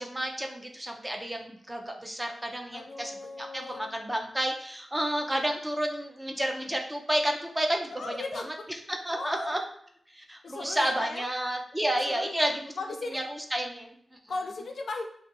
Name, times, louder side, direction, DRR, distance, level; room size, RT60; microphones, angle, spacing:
voice 1, 0.0-8.5 8.9-9.6 10.1-12.7 13.1-14.2, right 1 dB, 15° right, 2 dB, 0.4 m, -31 dB
voice 2, 2.7-3.9 8.0-8.5 9.1-9.6 10.4-11.2 12.1-12.5 12.8-13.2 14.3-15.0, left 3 dB, 65° left, 3 dB, 0.3 m, -37 dB
2.3 x 2.2 x 2.7 m, 0.66 s
wide cardioid pair, 120°, 0 cm